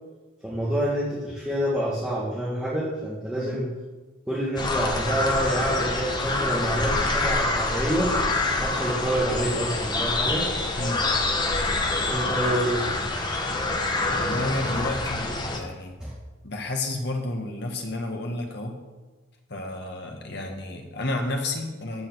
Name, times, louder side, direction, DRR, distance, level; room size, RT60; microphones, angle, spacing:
voice 1, 0.4-3.7 4.3-8.1 8.6-10.5 12.1-12.9 16.0-16.1, right 1 dB, 5° right, -8 dB, 1.8 m, -27 dB
sound 1, 4.6-15.6, left 2 dB, 20° left, 1.0 m, -26 dB
voice 2, 14.1-15.9 16.4-18.8 19.5-22.1, left 2 dB, 55° left, 3 dB, 1.6 m, -31 dB
14.0 x 5.1 x 6.2 m, 1.2 s
head